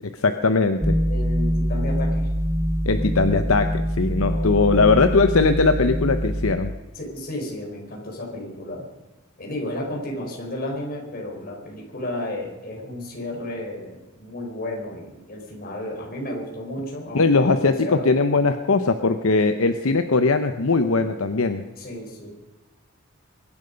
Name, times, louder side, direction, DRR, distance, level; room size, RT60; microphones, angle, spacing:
voice 1, 0.0-1.0 2.8-6.7 17.1-21.6, left 3 dB, 75° left, 8 dB, 0.9 m, -20 dB
sound 1, 0.8-6.5, equal, 15° right, 1.2 m, -24 dB
voice 2, 1.1-2.3 4.3-5.0 6.9-8.8 9.4-18.1 21.8-22.3, left 1 dB, 45° left, 0 dB, 4.6 m, -33 dB
23.5 x 11.0 x 5.2 m, 1.1 s
head